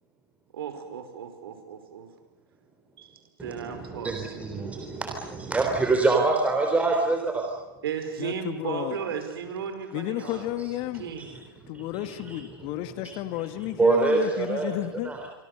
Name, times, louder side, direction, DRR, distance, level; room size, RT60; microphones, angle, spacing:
voice 1, 0.5-2.1 3.0-4.3 7.8-10.5 11.0-11.3, right 7 dB, 75° right, 7 dB, 5.1 m, -35 dB
voice 2, 3.4-7.6 11.2-11.4 11.7-12.7 13.0-13.1 13.8-14.7 15.0-15.2, right 3 dB, 10° right, 2 dB, 3.7 m, -26 dB
voice 3, 8.2-9.0 9.9-11.1 11.7-15.1, left 14 dB, 45° left, 11 dB, 1.7 m, -32 dB
27.0 x 24.0 x 6.8 m, 1.1 s
hypercardioid pair, 115°, 12 cm